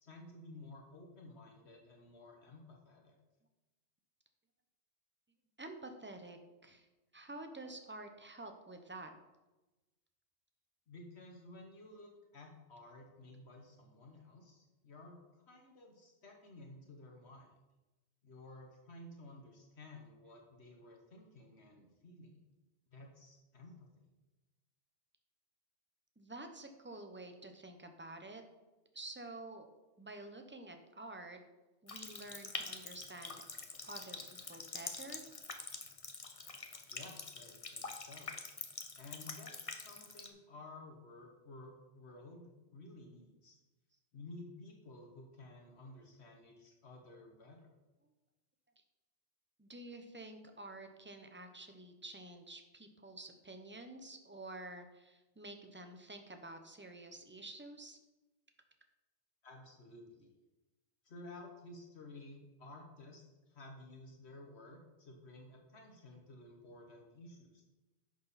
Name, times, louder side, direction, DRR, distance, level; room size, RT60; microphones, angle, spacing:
voice 1, 0.0-3.1 10.9-15.2 15.5-17.5 18.2-22.4 22.9-23.9 36.9-38.4 39.0-43.6 44.1-47.7 59.4-60.3 61.0-67.6, left 2 dB, 65° left, 1 dB, 1.5 m, -54 dB
voice 2, 5.6-6.9 7.1-9.1 26.2-28.4 28.9-29.7 30.0-31.4 31.8-33.4 33.8-35.2 49.6-58.0, right 2 dB, 10° right, 6 dB, 0.8 m, -49 dB
Water tap faucet, 31.9-40.3, left 4 dB, 30° left, 0.9 m, -46 dB
11.0 x 6.6 x 4.2 m, 1.1 s
omnidirectional pair, 1.2 m